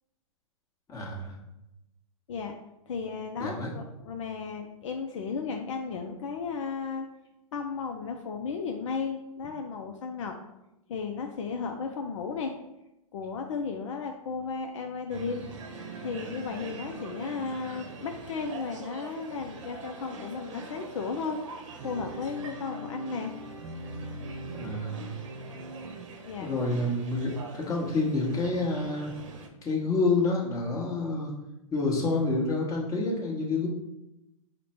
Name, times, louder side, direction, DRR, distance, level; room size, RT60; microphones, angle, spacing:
voice 1, 0.9-1.4 3.4-3.7 24.5-25.0 26.4-29.1 29.6-31.3 31.7-33.7, left 3 dB, 20° left, -3 dB, 1.1 m, -28 dB
voice 2, 2.9-7.1 7.5-10.3 10.9-12.5 13.1-15.5 16.0-21.4 21.8-23.3 26.3-26.5, left 5 dB, 60° left, 3 dB, 0.5 m, -34 dB
sound 1, 15.1-29.5, right 2 dB, 60° right, 0.8 m, -42 dB
5.0 x 2.2 x 4.2 m, 0.92 s
hypercardioid pair, 120°, 18 cm